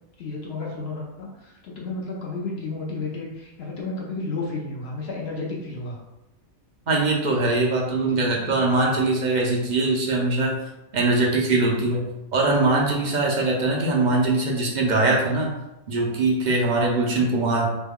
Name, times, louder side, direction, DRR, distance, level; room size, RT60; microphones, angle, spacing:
voice 1, 0.2-6.0 7.9-8.6, left 3 dB, 60° left, -2 dB, 0.7 m, -32 dB
voice 2, 6.9-10.5 10.9-12.0 12.3-15.5 15.9-17.7, right 2 dB, 50° right, -2 dB, 0.5 m, -22 dB
3.1 x 2.2 x 3.5 m, 0.93 s
omnidirectional pair, 1.5 m